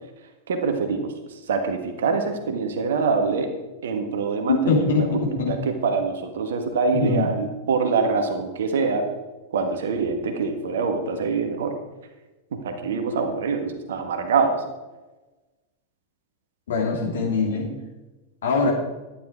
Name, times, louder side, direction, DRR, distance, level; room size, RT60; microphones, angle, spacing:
voice 1, 0.5-1.1 1.5-3.5 3.8-5.2 5.5-9.1 9.5-11.7 12.5-14.6, right 4 dB, 60° right, 5 dB, 1.6 m, -24 dB
voice 2, 4.7-5.0 5.4-5.5 6.9-7.3 16.7-17.7 18.4-18.7, left 4 dB, 60° left, -1 dB, 3.1 m, -22 dB
12.0 x 10.0 x 4.6 m, 1.1 s
figure-of-eight pair, 90°, 0 cm